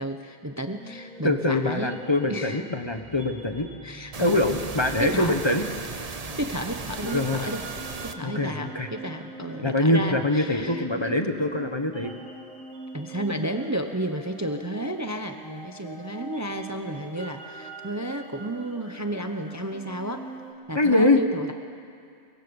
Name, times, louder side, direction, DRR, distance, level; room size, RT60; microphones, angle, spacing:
voice 1, 0.0-2.0 2.3-2.6 3.8-4.4 5.0-5.4 6.4-7.6 8.0-11.1 12.9-20.2 20.7-21.5, right 1 dB, 15° right, 6 dB, 0.8 m, -32 dB
sound 1, 0.7-20.5, right 3 dB, 5° left, 2.9 m, -43 dB
voice 2, 1.2-3.7 4.2-5.7 7.0-7.5 8.2-8.9 9.6-12.1 20.7-21.2, left 2 dB, 25° left, 6 dB, 1.1 m, -24 dB
sound 2, 4.1-8.1, right 4 dB, 40° right, 1.0 m, -36 dB
23.0 x 21.0 x 7.1 m, 2.3 s
omnidirectional pair, 1.1 m